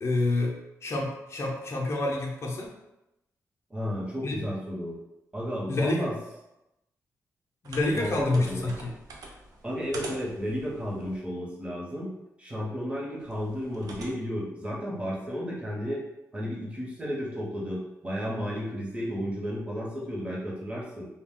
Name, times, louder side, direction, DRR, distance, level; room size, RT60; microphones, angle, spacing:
voice 1, 0.0-2.7 4.2-4.4 5.7-6.1 7.6-8.9, left 2 dB, 45° left, -1 dB, 0.6 m, -28 dB
voice 2, 3.7-5.0 5.3-6.1 7.9-8.7 9.6-12.1 12.4-16.0 16.3-21.1, equal, 20° right, -4 dB, 0.9 m, -33 dB
sound 1, 7.6-11.2 13.2-14.1, right 2 dB, 85° right, 0.5 m, -45 dB
2.3 x 2.2 x 3.6 m, 0.91 s
cardioid pair, 95°, 6 cm